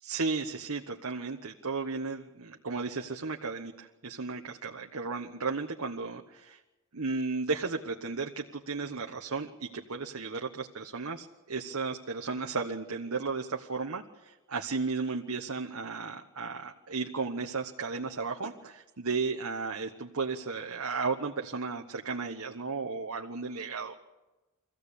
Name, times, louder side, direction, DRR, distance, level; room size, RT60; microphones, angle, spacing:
voice 1, 0.0-6.6 6.9-23.9, right 4 dB, 70° right, 2 dB, 1.2 m, -34 dB
24.5 x 15.5 x 8.5 m, 1.1 s
head